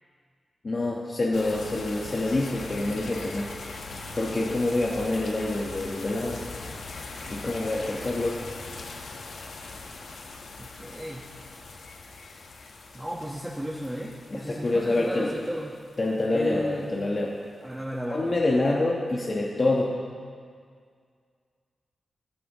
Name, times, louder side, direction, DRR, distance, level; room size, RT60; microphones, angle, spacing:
voice 1, 0.6-3.5 4.2-6.4 7.3-8.4 14.3-15.3 16.0-17.4 18.1-19.9, left 2 dB, 40° left, -3 dB, 1.2 m, -26 dB
sound 1, 1.3-17.2, left 3 dB, 85° left, 1.3 m, -41 dB
voice 2, 10.6-11.3 12.9-15.7 16.3-16.9 17.6-18.2, equal, 5° right, -4 dB, 1.3 m, -34 dB
17.0 x 14.5 x 3.1 m, 2.1 s
wide cardioid pair, 100°, 0 cm